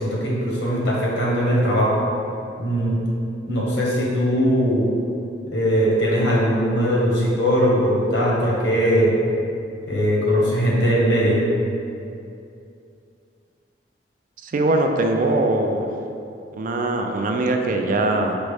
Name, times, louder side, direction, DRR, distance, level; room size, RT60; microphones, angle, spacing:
voice 1, 0.0-2.0 2.6-3.0 3.5-4.9 5.5-9.2 9.8-11.4, equal, 85° left, -4 dB, 1.0 m, -20 dB
voice 2, 14.4-15.9 16.6-18.4, right 2 dB, 45° right, 4 dB, 0.3 m, -21 dB
5.2 x 2.0 x 4.7 m, 2.6 s
head